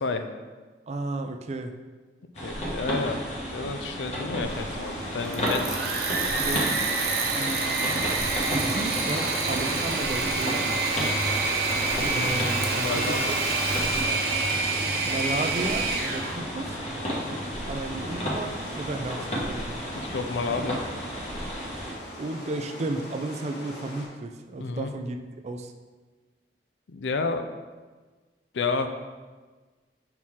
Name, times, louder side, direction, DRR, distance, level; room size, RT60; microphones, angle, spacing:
voice 1, 0.9-1.7 6.2-6.7 7.3-8.2 8.6-10.8 12.0-13.2 15.0-16.8 17.7-19.7 22.2-25.2 25.4-25.7, right 2 dB, 40° right, 6 dB, 0.4 m, -33 dB
sound 1, 2.3-21.9, equal, 40° left, 1.3 m, -32 dB
voice 2, 2.4-3.2 3.5-6.0 12.7-13.3 19.9-20.8 24.6-24.9 26.9-27.5 28.5-28.9, left 4 dB, 90° left, 7 dB, 0.5 m, -30 dB
sound 2, 4.4-24.0, equal, 70° left, 1.7 m, -41 dB
Engine / Mechanisms, 5.2-16.4, right 3 dB, 60° right, 0.8 m, -27 dB
5.9 x 4.4 x 3.7 m, 1.3 s
head